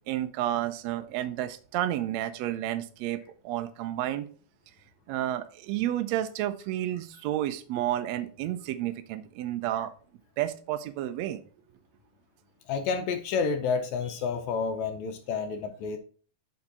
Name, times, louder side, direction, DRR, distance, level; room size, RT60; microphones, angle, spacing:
voice 1, 0.1-4.3 5.1-9.9 10.4-11.4, right 13 dB, 80° right, 10 dB, 1.6 m, -31 dB
voice 2, 12.7-16.0, left 5 dB, 75° left, 6 dB, 1.8 m, -30 dB
7.0 x 5.3 x 4.1 m, 0.43 s
omnidirectional pair, 3.7 m